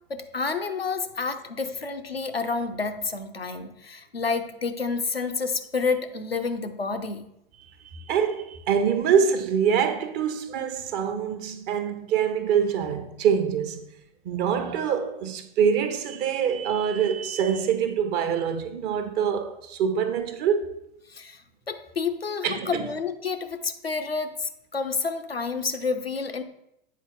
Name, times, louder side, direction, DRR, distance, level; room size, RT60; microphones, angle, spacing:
voice 1, 0.1-7.2 21.1-21.4 21.7-26.4, left 4 dB, 90° left, 0.6 m, -29 dB
voice 2, 7.9-13.8 14.2-20.7 22.4-22.8, right 7 dB, 35° right, 0.7 m, -25 dB
8.4 x 3.9 x 3.8 m
figure-of-eight pair, 90°, 29 cm